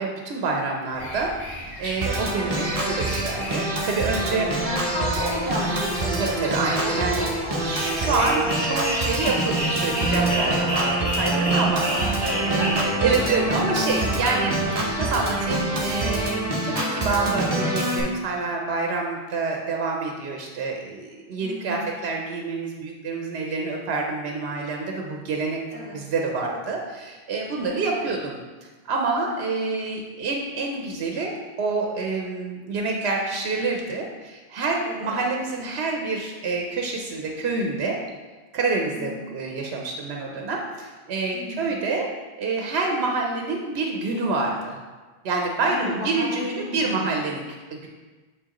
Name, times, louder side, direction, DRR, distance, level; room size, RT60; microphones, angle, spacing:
voice 1, 0.0-1.3 1.8-4.5 6.2-11.8 12.5-14.5 14.8-25.6 25.9-31.3 31.6-38.0 38.5-42.1 42.4-44.8 45.2-47.4 47.7-47.9, right 3 dB, 85° right, 1 dB, 0.9 m, -27 dB
sound 1, 0.9-16.2, equal, 20° left, 1.3 m, -33 dB
Organ, 2.0-18.0, right 2 dB, 40° right, 0.9 m, -26 dB
voice 2, 4.6-6.5 6.7-8.4 11.2-13.7 21.4-21.9 25.7-26.0 27.6-28.0 29.2-29.4 34.8-35.2 39.0-39.2 41.3-41.7 45.7-47.1, equal, 60° left, -11 dB, 2.2 m, -33 dB
6.8 x 4.7 x 2.9 m, 1.3 s
omnidirectional pair, 1.0 m